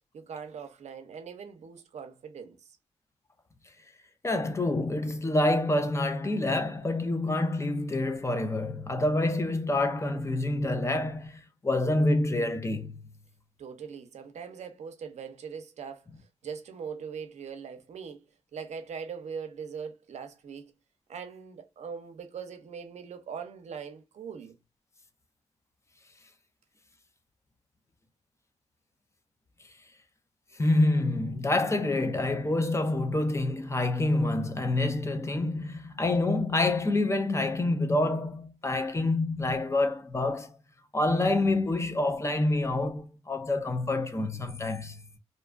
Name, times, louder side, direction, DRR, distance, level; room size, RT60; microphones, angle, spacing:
voice 1, 0.1-2.8 13.6-18.3 18.5-20.7 21.1-24.6, right 6 dB, 75° right, 0.6 m, -41 dB
voice 2, 4.2-13.1 30.6-40.5 40.9-45.1, left 2 dB, 25° left, 0.5 m, -27 dB
2.5 x 2.3 x 2.2 m
cardioid pair, 80°, 12 cm